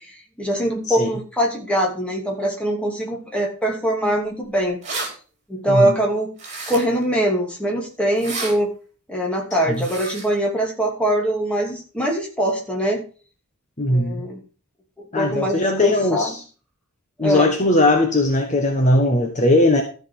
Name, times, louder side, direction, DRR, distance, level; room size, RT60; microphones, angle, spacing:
voice 1, 0.4-4.8 5.5-6.3 6.7-8.7 9.1-13.0 13.9-14.4 15.0-16.4 17.2-17.5, right 1 dB, 5° left, 2.7 m, -22 dB
sound 1, 4.3-4.4 4.6-5.1 6.4-7.0 8.1-8.5 9.7-10.3, right 3 dB, 30° right, 4.2 m, -30 dB
voice 2, 5.7-6.0 9.7-9.9 13.8-14.2 15.1-16.4 17.2-19.8, left 1 dB, 35° left, 1.5 m, -19 dB
13.5 x 5.3 x 6.1 m
head